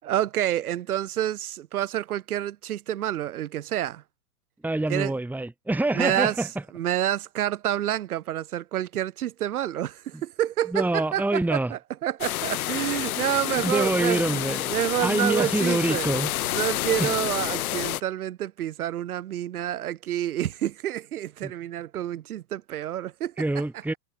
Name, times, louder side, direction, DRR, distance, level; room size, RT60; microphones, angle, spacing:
voice 1, 0.0-4.0 4.9-5.1 5.9-6.5 6.7-16.1 16.4-23.3, right 12 dB, 70° right, 6.7 m, -28 dB
voice 2, 4.6-6.5 10.7-11.7 13.5-16.3 17.0-17.2 21.4-21.5 23.4-23.9, right 2 dB, 5° right, 2.3 m, -26 dB
sound 1, 12.2-18.0, left 14 dB, 70° left, 1.3 m, -29 dB
hypercardioid pair, 120°, 45 cm